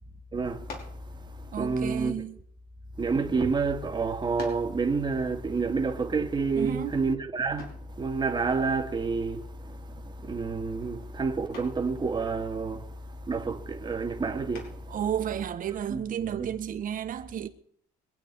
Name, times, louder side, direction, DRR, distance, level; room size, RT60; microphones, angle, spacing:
voice 1, 0.3-0.7 1.3-2.2 3.0-7.7 8.0-13.0 13.2-14.9 15.9-16.5, right 4 dB, 25° right, 2.4 m, -29 dB
sound 1, 0.6-1.1 2.0-3.2 3.8-3.9 4.4-4.8 7.6-7.9 9.8-10.2 10.6-10.9 11.5-11.9 14.5-15.0, left 4 dB, 70° left, 5.5 m, -44 dB
voice 2, 1.5-2.4 6.5-6.9 14.9-17.5, right 9 dB, 55° right, 1.5 m, -32 dB
25.0 x 8.9 x 4.9 m
cardioid pair, 110°, 17 cm